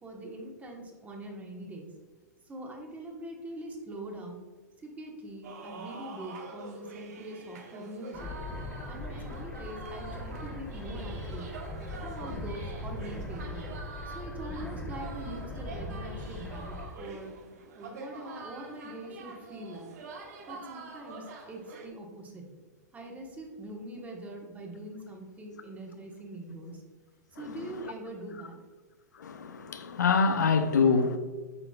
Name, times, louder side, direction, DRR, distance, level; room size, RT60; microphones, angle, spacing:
voice 1, 0.0-1.9 2.4-4.4 4.8-8.3 8.9-11.5 11.9-13.7 14.0-17.3 17.8-19.9 20.5-22.5 22.9-26.8 27.3-28.6, right 1 dB, 15° right, 1.4 m, -43 dB
sound 1, 5.4-21.9, right 4 dB, 65° right, 1.2 m, -46 dB
sound 2, 8.1-16.9, left 2 dB, 15° left, 1.6 m, -39 dB
voice 2, 29.1-31.2, left 5 dB, 85° left, 0.6 m, -25 dB
9.0 x 5.7 x 2.4 m
hypercardioid pair, 110°, 9 cm